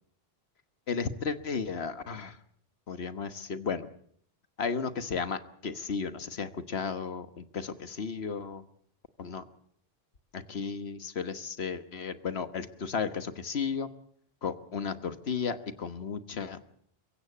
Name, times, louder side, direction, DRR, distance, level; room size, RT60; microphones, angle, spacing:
voice 1, 0.9-2.4 2.9-3.9 4.6-8.6 9.2-9.4 10.3-13.9 14.4-16.7, left 5 dB, 85° left, 12 dB, 1.5 m, -34 dB
23.5 x 16.0 x 8.5 m, 0.64 s
omnidirectional pair, 1.0 m